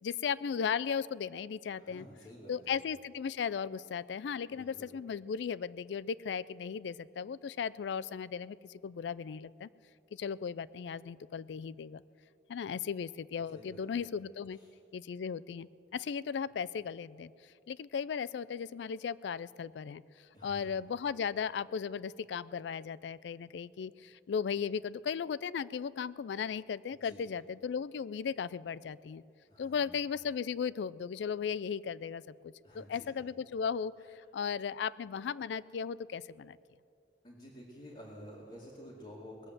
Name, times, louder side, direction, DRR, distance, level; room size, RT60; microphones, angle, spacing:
voice 1, 0.0-2.1 2.5-9.7 10.1-12.0 12.5-14.6 14.9-17.3 17.7-20.0 20.4-29.2 29.6-33.9 34.3-36.6, left 6 dB, 80° left, 19 dB, 0.3 m, -36 dB
voice 2, 1.8-2.8 4.5-4.9 13.5-14.1 14.6-14.7 20.3-20.8 26.9-27.3 29.5-30.0 32.6-33.1 37.2-39.5, equal, 35° left, -6 dB, 2.2 m, -51 dB
20.0 x 7.7 x 7.5 m, 2.5 s
head